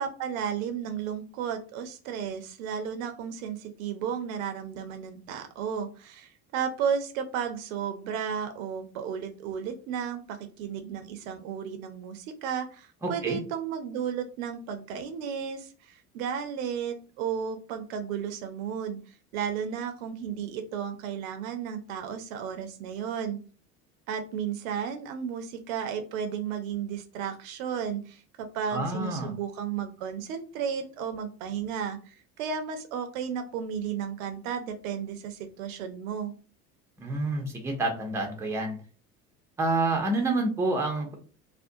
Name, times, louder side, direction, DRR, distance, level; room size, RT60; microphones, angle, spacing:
voice 1, 0.0-19.0 19.3-23.4 24.1-36.3, right 7 dB, 65° right, 7 dB, 0.5 m, -33 dB
voice 2, 13.0-13.4 28.7-29.3 37.0-38.8 39.6-41.1, right 2 dB, 5° right, 2 dB, 0.5 m, -28 dB
2.4 x 2.1 x 2.6 m, 0.39 s
figure-of-eight pair, 65°, 44 cm